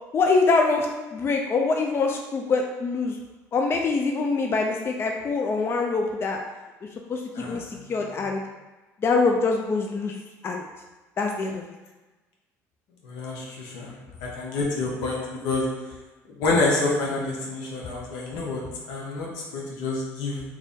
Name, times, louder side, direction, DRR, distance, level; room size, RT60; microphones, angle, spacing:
voice 1, 0.1-3.2 3.5-6.4 7.1-8.4 9.0-10.7 11.2-11.6, left 4 dB, 35° left, 2 dB, 0.4 m, -24 dB
voice 2, 7.4-7.8 13.0-14.0 14.2-15.7 16.4-18.6 18.9-20.4, left 3 dB, 80° left, -3 dB, 0.9 m, -28 dB
3.3 x 2.5 x 3.6 m, 1.2 s
supercardioid pair, 85°, 7 cm